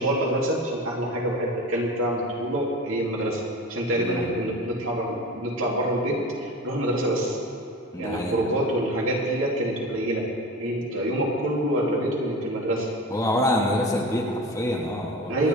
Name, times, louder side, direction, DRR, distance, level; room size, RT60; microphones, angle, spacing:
voice 1, 0.0-3.4 3.7-7.4 8.0-10.2 10.6-12.9 15.3-15.5, right 1 dB, 75° right, -3 dB, 2.7 m, -26 dB
voice 2, 4.0-4.3 7.9-8.4 13.1-15.5, left 1 dB, 15° left, -2 dB, 1.5 m, -26 dB
26.0 x 10.5 x 3.4 m, 2.9 s
head